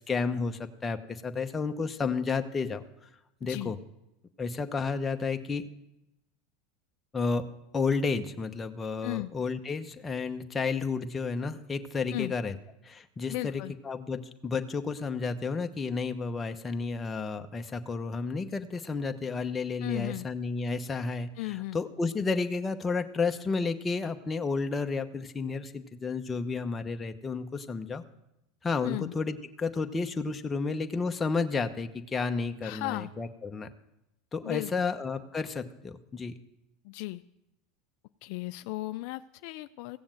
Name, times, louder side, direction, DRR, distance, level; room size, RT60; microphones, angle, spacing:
voice 1, 0.0-2.8 3.4-3.8 4.4-5.6 7.1-7.4 7.7-12.5 12.8-28.0 28.6-33.7 34.3-36.3, left 4 dB, 20° left, 6 dB, 1.0 m, -31 dB
voice 2, 3.4-3.7 9.0-9.3 12.1-12.3 13.3-13.7 19.8-20.3 21.4-21.8 28.8-29.1 32.6-33.1 34.4-34.9 36.8-37.2 38.2-40.0, left 19 dB, 65° left, 12 dB, 0.4 m, -35 dB
16.0 x 7.1 x 7.7 m, 0.88 s
supercardioid pair, 110°, 0 cm